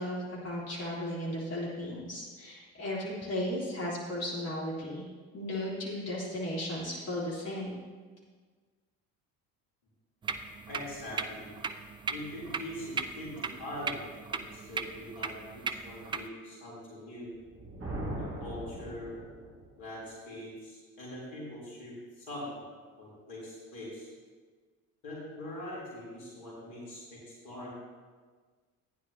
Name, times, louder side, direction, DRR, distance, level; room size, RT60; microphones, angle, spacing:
voice 1, 0.0-5.1 5.3-7.8, left 1 dB, 35° left, -6 dB, 3.6 m, -35 dB
sound 1, 10.2-16.3, right 5 dB, 10° right, 0.3 m, -38 dB
voice 2, 10.7-11.5 12.1-17.3 18.2-19.2 19.8-22.6 23.0-24.1 25.0-27.2 27.4-27.7, left 1 dB, 70° left, -6 dB, 3.6 m, -42 dB
Thunder, 17.3-19.7, right 1 dB, 30° right, 2.4 m, -39 dB
15.0 x 9.8 x 2.9 m, 1.5 s
figure-of-eight pair, 55°, 44 cm